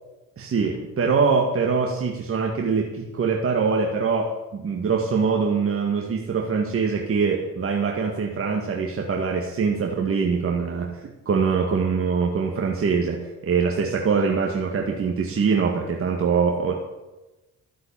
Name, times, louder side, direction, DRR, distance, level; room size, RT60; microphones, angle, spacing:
voice 1, 0.4-13.2 13.4-16.7, right 5 dB, 45° right, 0 dB, 2.1 m, -23 dB
13.5 x 7.7 x 8.8 m, 1.1 s
cardioid pair, 90°, 30 cm